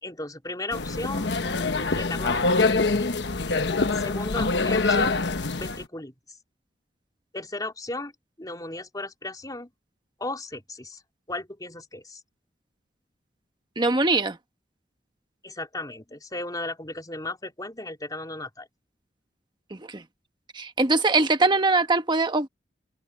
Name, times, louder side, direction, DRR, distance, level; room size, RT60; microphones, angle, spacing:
voice 1, 0.0-2.7 4.0-5.2 5.6-6.1 7.3-8.1 8.4-9.7 10.2-11.0 11.3-12.2 15.4-18.7, left 2 dB, 20° left, 3.7 m, -35 dB
sound 1, 0.7-5.8, left 3 dB, 70° left, 1.1 m, -25 dB
voice 2, 13.8-14.4 19.7-20.0 20.5-22.5, right 3 dB, 25° right, 1.4 m, -22 dB
open air
head